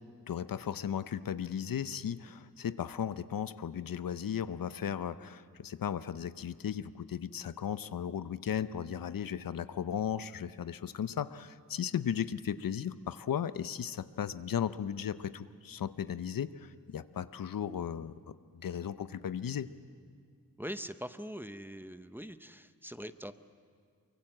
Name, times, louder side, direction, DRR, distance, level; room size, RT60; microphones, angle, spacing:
voice 1, 0.3-18.1 18.6-19.7, left 8 dB, 70° left, 14 dB, 0.7 m, -36 dB
voice 2, 20.6-23.3, equal, 5° right, 11 dB, 0.7 m, -42 dB
23.5 x 23.5 x 7.7 m, 2.1 s
wide cardioid pair, 85°, 35 cm